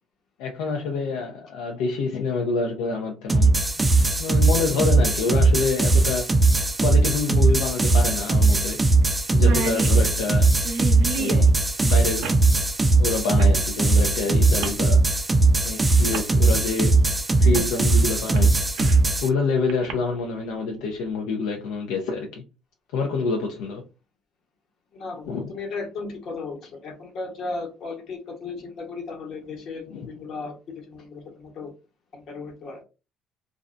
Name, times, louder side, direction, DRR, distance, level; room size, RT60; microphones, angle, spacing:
voice 1, 0.4-3.6 4.2-6.3 6.8-8.8 9.3-10.5 11.1-12.4 13.0-15.0 15.6-17.0 17.4-18.5 19.2-22.4 22.9-23.8 25.3-25.5 29.9-30.1, left 4 dB, 85° left, 0.4 m, -27 dB
sound 1, 3.3-19.3, right 3 dB, 20° right, 0.4 m, -19 dB
sound 2, 5.6-5.7 7.4-7.5 7.9-8.0 8.5-8.7 9.0-9.1 9.3-11.5 12.2-12.4 13.4-13.6 14.6-14.8 15.7-15.8 16.1-16.3 17.5-17.7 18.1-19.1 19.7-19.9, right 4 dB, 85° right, 0.6 m, -31 dB
voice 2, 24.9-31.7 32.1-32.8, left 3 dB, 60° left, 1.1 m, -35 dB
2.4 x 2.1 x 2.5 m
supercardioid pair, 80°, 0 cm